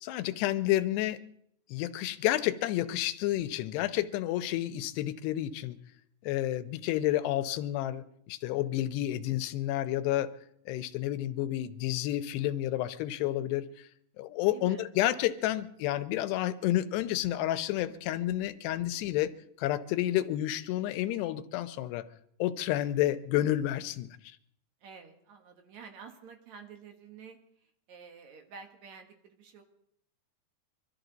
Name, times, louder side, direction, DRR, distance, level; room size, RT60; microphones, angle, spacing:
voice 1, 0.0-1.2 1.7-5.8 6.2-10.3 10.7-13.9 14.2-22.0 22.4-24.1, left 14 dB, 90° left, 2.9 m, -30 dB
voice 2, 14.4-14.9 24.8-29.6, right 6 dB, 60° right, 2.2 m, -50 dB
25.0 x 13.0 x 4.0 m
omnidirectional pair, 4.7 m